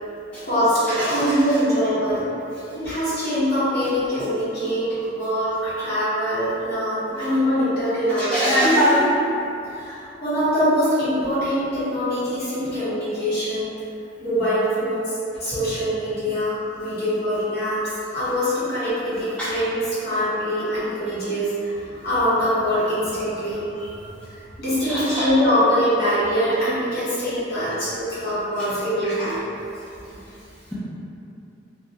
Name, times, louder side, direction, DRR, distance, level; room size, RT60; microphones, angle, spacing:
voice 1, 0.4-2.2 2.7-8.7 9.7-13.7 14.2-21.7 22.0-24.1 24.6-29.5, equal, 50° left, -13 dB, 1.0 m, -23 dB
voice 2, 8.3-9.1 19.4-19.5 24.9-25.3, equal, 5° left, -12 dB, 0.3 m, -19 dB
2.2 x 2.0 x 2.7 m, 2.8 s
head